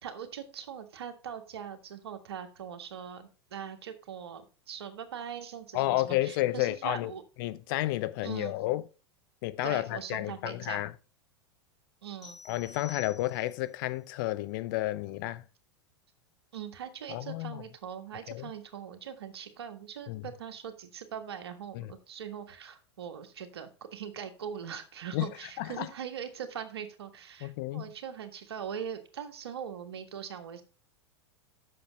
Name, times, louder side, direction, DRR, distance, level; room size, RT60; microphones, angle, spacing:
voice 1, 0.0-7.2 8.2-8.5 9.6-10.8 12.0-12.4 16.5-30.6, right 8 dB, 70° right, 1.6 m, -41 dB
voice 2, 5.7-7.1 7.4-8.8 9.4-10.9 12.4-15.4 17.1-17.6 18.3-18.5 20.1-20.2 21.7-21.9 25.1-25.3 25.6-25.9 27.4-27.9, left 17 dB, 50° left, 0.7 m, -31 dB
sound 1, 12.2-13.7, left 5 dB, 25° left, 2.4 m, -49 dB
7.7 x 6.7 x 5.2 m
figure-of-eight pair, 90°, 14 cm